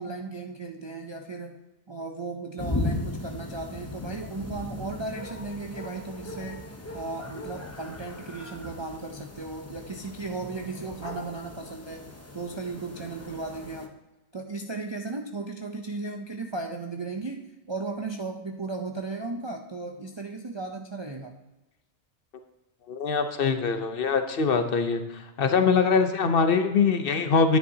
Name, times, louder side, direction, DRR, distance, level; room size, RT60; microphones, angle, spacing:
voice 1, 0.0-1.6 1.9-6.7 6.9-14.0 14.3-21.4, right 3 dB, 40° right, 3 dB, 0.4 m, -36 dB
sound 1, 2.6-13.9, left 2 dB, 15° left, 0.6 m, -37 dB
voice 2, 22.9-27.6, left 5 dB, 60° left, 8 dB, 0.8 m, -23 dB
10.5 x 9.4 x 2.7 m, 1.1 s
omnidirectional pair, 1.2 m